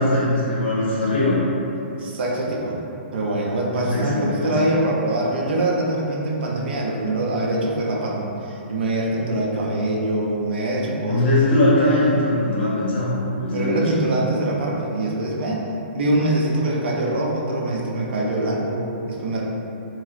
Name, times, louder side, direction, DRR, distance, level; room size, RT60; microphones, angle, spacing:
voice 1, 0.0-1.4 3.9-4.5 11.1-14.0, left 1 dB, 55° left, -6 dB, 0.7 m, -20 dB
voice 2, 2.0-2.8 3.1-11.4 13.5-15.7 15.9-19.4, right 1 dB, 65° right, -3 dB, 0.6 m, -24 dB
3.0 x 2.8 x 2.5 m, 2.9 s
hypercardioid pair, 145°, 6 cm